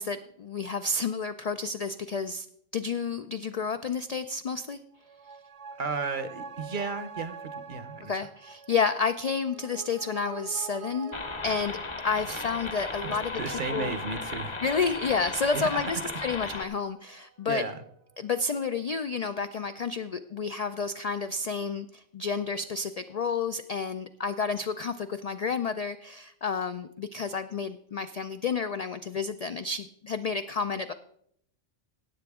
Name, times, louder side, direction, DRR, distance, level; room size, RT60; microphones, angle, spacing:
voice 1, 0.0-2.5 2.7-4.8 8.0-11.2 11.4-11.8 12.0-13.9 14.6-17.6 18.2-30.9, left 4 dB, 70° left, 9 dB, 0.3 m, -30 dB
sound 1, 4.9-17.8 18.1-18.2, right 5 dB, 70° right, 1.2 m, -45 dB
voice 2, 5.8-8.1 13.0-14.6 15.5-15.8 17.5-17.8, right 4 dB, 50° right, 11 dB, 0.9 m, -34 dB
sound 2, 11.1-16.6, left 4 dB, 30° left, 0.7 m, -36 dB
17.0 x 7.7 x 3.6 m, 0.69 s
omnidirectional pair, 1.2 m